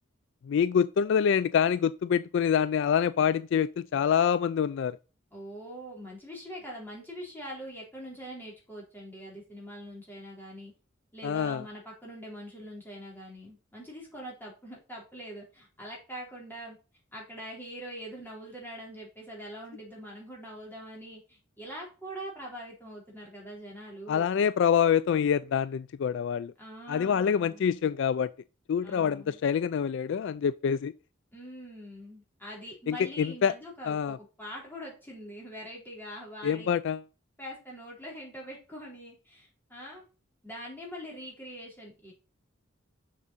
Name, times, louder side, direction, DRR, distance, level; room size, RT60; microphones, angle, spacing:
voice 1, 0.5-5.0 11.2-11.6 24.1-26.5 26.9-28.3 28.7-30.9 32.9-33.5 33.9-34.2 36.4-37.0, left 7 dB, 60° left, 0.3 m, -26 dB
voice 2, 5.3-10.7 11.1-16.8 17.1-24.4 26.6-27.7 28.8-29.4 31.3-36.7 37.4-40.0 40.4-42.1, equal, 10° left, 4.1 m, -43 dB
7.2 x 6.2 x 4.0 m
head